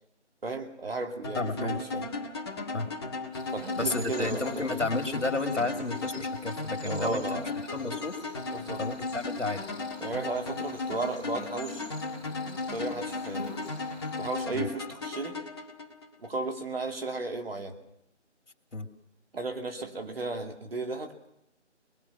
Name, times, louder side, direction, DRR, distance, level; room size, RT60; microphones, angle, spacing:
voice 1, 0.4-2.1 3.5-4.7 6.8-7.5 8.5-8.8 10.0-11.9 12.7-13.5 14.2-15.4 16.2-17.8 19.3-21.1, right 3 dB, 55° right, 4 dB, 2.6 m, -34 dB
sound 1, 1.2-16.3, left 3 dB, 20° left, 1.7 m, -36 dB
voice 2, 1.4-1.8 2.7-2.9 3.8-8.2 8.8-9.7 14.5-14.7 18.7-18.9, left 3 dB, 85° left, 5 dB, 2.7 m, -32 dB
Cricket, 3.3-14.4, left 1 dB, ahead, 3.1 m, -48 dB
23.0 x 21.5 x 6.0 m, 0.79 s
figure-of-eight pair, 165°, 36 cm